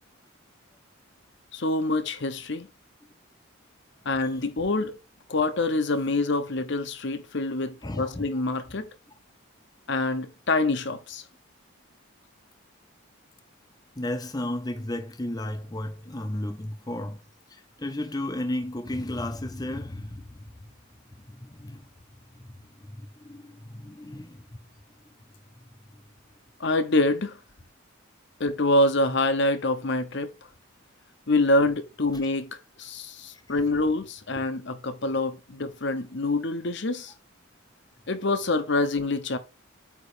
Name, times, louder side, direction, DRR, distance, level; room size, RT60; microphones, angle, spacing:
voice 1, 1.5-2.7 4.0-5.0 5.3-8.9 9.9-11.2 26.6-27.4 28.4-30.3 31.3-37.1 38.1-39.4, left 2 dB, 55° left, 0.9 m, -26 dB
voice 2, 7.8-8.3 14.0-17.2 17.5-20.7 21.3-21.9 22.3-24.5 25.9-26.0, left 1 dB, 20° left, 0.6 m, -34 dB
8.4 x 3.1 x 4.9 m
head